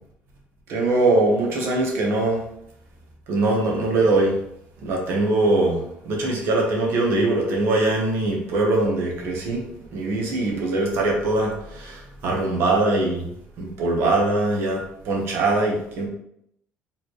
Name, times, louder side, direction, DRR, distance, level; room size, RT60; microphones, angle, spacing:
voice 1, 0.7-2.4 3.3-4.3 4.8-9.7 9.9-13.2 13.6-16.1, right 2 dB, 60° right, 0 dB, 1.2 m, -22 dB
4.4 x 3.5 x 3.1 m, 0.72 s
cardioid pair, 165°, 5 cm